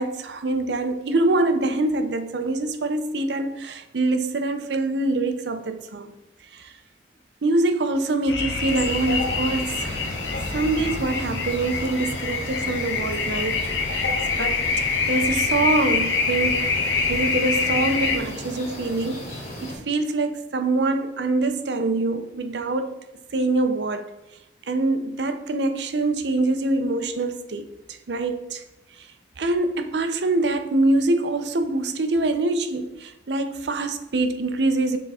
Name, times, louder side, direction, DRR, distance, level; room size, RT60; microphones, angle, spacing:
voice 1, 0.0-6.1 6.5-6.7 7.4-10.0 10.5-14.0 14.4-14.6 15.1-16.6 17.0-23.0 23.3-24.1 24.7-27.7 28.1-28.6 29.0-29.1 29.4-35.0, right 2 dB, 70° right, 0.6 m, -24 dB
sound 1, 8.3-18.2, left 4 dB, 80° left, 0.9 m, -25 dB
sound 2, 8.6-19.8, left 1 dB, 40° left, 2.1 m, -37 dB
6.4 x 3.6 x 4.2 m
head